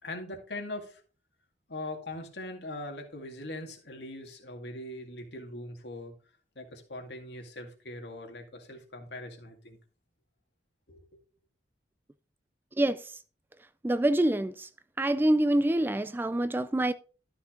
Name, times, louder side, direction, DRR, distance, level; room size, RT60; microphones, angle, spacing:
voice 1, 0.0-1.0 1.7-6.1 6.6-9.8 10.9-11.2, left 1 dB, 70° left, 2.1 m, -41 dB
voice 2, 12.8-13.1 13.8-14.7 15.0-16.9, right 1 dB, 10° right, 0.3 m, -26 dB
12.5 x 6.0 x 3.8 m
head